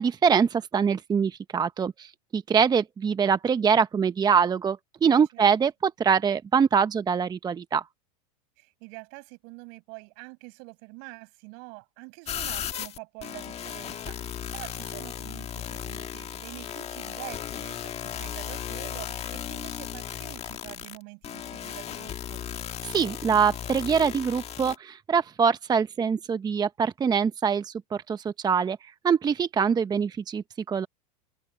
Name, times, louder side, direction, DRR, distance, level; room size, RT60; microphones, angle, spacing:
voice 1, 0.0-7.8 22.8-30.9, right 6 dB, 20° right, 0.8 m, -24 dB
voice 2, 8.6-22.4, right 35 dB, 60° right, 7.6 m, -45 dB
sound 1, 12.3-24.8, left 9 dB, 30° left, 1.9 m, -36 dB
open air
hypercardioid pair, 105°, 20 cm